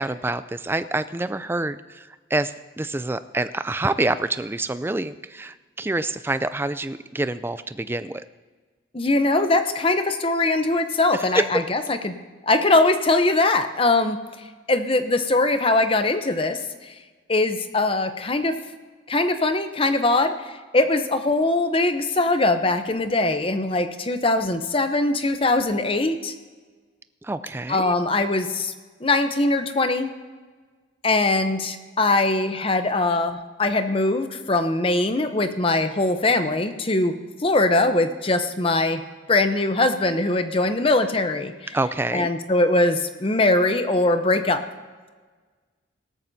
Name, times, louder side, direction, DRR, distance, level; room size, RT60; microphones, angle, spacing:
voice 1, 0.0-8.2 11.3-11.4 27.2-27.9 41.7-42.3, right 2 dB, 10° right, 13 dB, 0.3 m, -27 dB
voice 2, 8.9-12.1 12.4-14.2 14.7-17.0 17.3-18.6 19.1-26.3 27.7-28.7 29.0-30.1 31.0-37.1 37.4-39.0 39.3-41.8 42.1-44.6, left 2 dB, 25° left, 8 dB, 0.7 m, -21 dB
18.0 x 13.0 x 2.7 m, 1.4 s
head